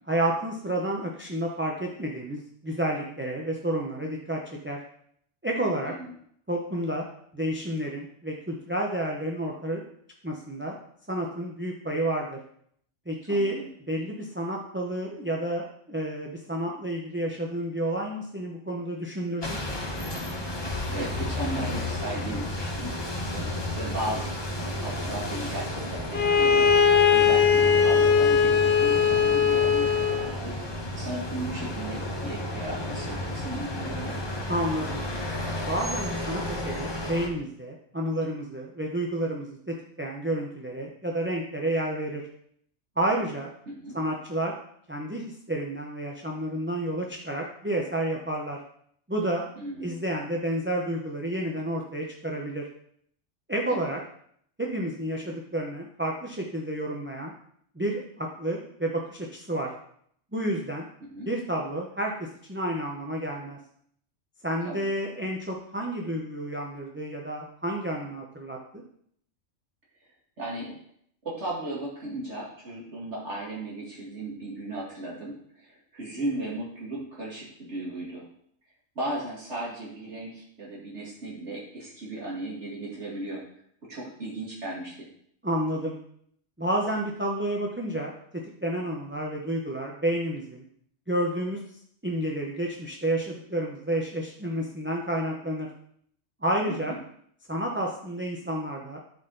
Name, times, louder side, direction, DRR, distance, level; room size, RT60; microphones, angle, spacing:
voice 1, 0.1-4.8 5.4-5.9 6.5-7.0 7.3-9.8 10.2-10.8 11.1-12.4 13.1-13.6 13.9-19.6 34.5-35.0 35.6-42.2 43.0-43.5 43.9-44.5 44.9-48.6 49.1-49.4 49.8-52.6 53.5-54.0 54.6-57.3 57.7-59.7 60.3-60.9 61.3-63.6 64.4-68.8 85.4-86.0 86.6-90.6 91.1-91.6 92.0-95.7 96.4-96.9 97.5-99.0, right 1 dB, 10° right, -1 dB, 0.7 m, -30 dB
voice 2, 5.8-6.2 13.3-13.7 20.9-24.3 24.8-34.2 43.7-44.0 49.6-49.9 53.7-53.9 61.1-61.3 64.6-64.9 70.4-70.7 71.2-78.3 79.0-83.4 83.9-85.1 96.7-97.0, right 1 dB, 65° right, -5 dB, 2.3 m, -36 dB
sound 1, 19.4-37.3, left 1 dB, 25° left, 1.0 m, -32 dB
Bowed string instrument, 26.1-30.3, left 6 dB, 60° left, 1.0 m, -20 dB
13.0 x 4.3 x 3.9 m, 0.68 s
omnidirectional pair, 1.3 m